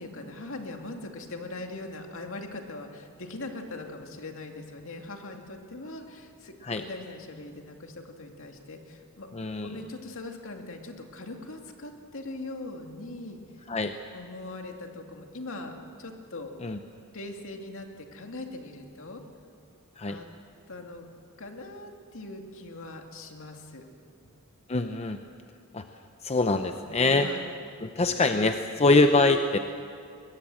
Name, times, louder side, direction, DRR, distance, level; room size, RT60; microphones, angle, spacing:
voice 1, 0.0-9.3 9.6-13.4 14.1-16.5 17.1-19.2 20.1-20.3 20.7-21.1 21.4-23.9 27.2-27.5, left 2 dB, 65° left, 3 dB, 2.4 m, -41 dB
voice 2, 9.3-9.8 13.7-13.9 16.6-16.8 20.0-20.2 24.7-25.2 25.7-25.8 26.2-27.3 27.8-29.6, left 2 dB, 30° left, 7 dB, 0.7 m, -24 dB
23.0 x 20.5 x 7.7 m, 2.3 s
head